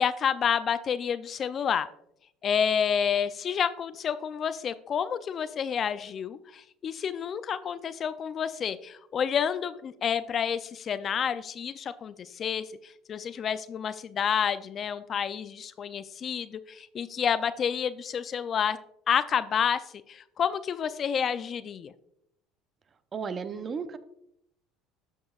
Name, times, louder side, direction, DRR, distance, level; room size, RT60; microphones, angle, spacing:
voice 1, 0.0-1.9 2.4-18.8 19.1-21.9, left 7 dB, 40° left, 13 dB, 0.4 m, -29 dB
voice 2, 23.1-24.0, right 6 dB, 35° right, 12 dB, 0.6 m, -34 dB
12.0 x 5.4 x 2.4 m, 0.75 s
supercardioid pair, 95°, 0 cm